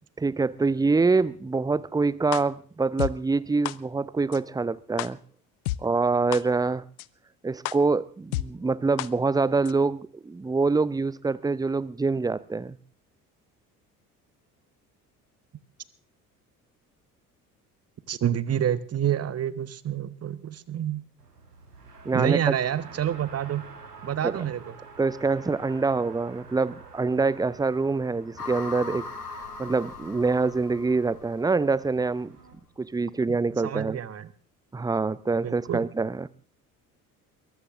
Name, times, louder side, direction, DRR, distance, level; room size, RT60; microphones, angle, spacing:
voice 1, 0.2-5.2 5.8-6.8 7.4-12.8 22.0-22.4 24.2-24.4 25.0-29.1 29.6-32.3 32.8-34.0 34.7-36.3, right 4 dB, 10° right, 0.7 m, -25 dB
sound 1, 2.3-2.4 3.0-3.1 3.7-3.8 4.3-4.4 5.0-5.1 5.7-5.8 6.3-6.4 7.0-7.1 7.7-7.8 8.3-8.4 9.0-9.1 9.7-9.8, left 18 dB, 70° left, 0.7 m, -29 dB
voice 2, 18.1-21.0 22.1-23.6 24.0-24.6 33.6-34.3 35.4-35.8, right 10 dB, 30° right, 1.2 m, -28 dB
Race car auto racing, 21.2-32.5, right 4 dB, 85° right, 2.0 m, -48 dB
sound 2, 28.4-31.7, left 4 dB, 85° left, 2.3 m, -39 dB
23.0 x 13.5 x 3.7 m
figure-of-eight pair, 55°, 46 cm